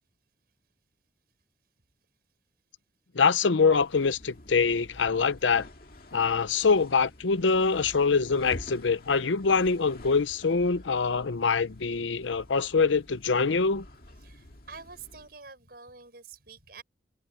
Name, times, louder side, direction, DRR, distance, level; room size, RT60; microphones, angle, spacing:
voice 1, 3.1-5.6 6.1-13.8, left 5 dB, 90° left, 0.7 m, -24 dB
sound 1, 3.6-15.4, left 1 dB, 55° left, 2.2 m, -49 dB
voice 2, 14.2-16.8, right 5 dB, 55° right, 6.7 m, -47 dB
head